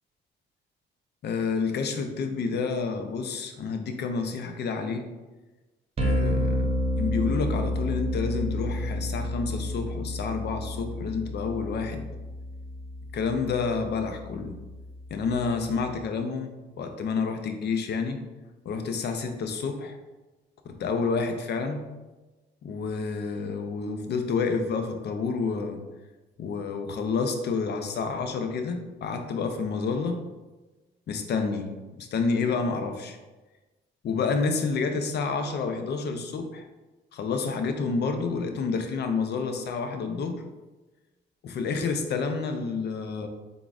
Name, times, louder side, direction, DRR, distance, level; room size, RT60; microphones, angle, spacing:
voice 1, 1.2-5.1 6.0-12.1 13.1-14.6 15.1-18.2 18.6-20.0 20.6-21.9 22.6-25.8 26.4-30.2 31.1-33.2 34.0-36.7 37.1-40.4 41.4-43.3, left 4 dB, 60° left, 6 dB, 0.5 m, -29 dB
sound 1, 6.0-16.0, left 1 dB, 30° right, 0.6 m, -31 dB
3.8 x 3.5 x 2.4 m, 1.2 s
cardioid pair, 90°, 20 cm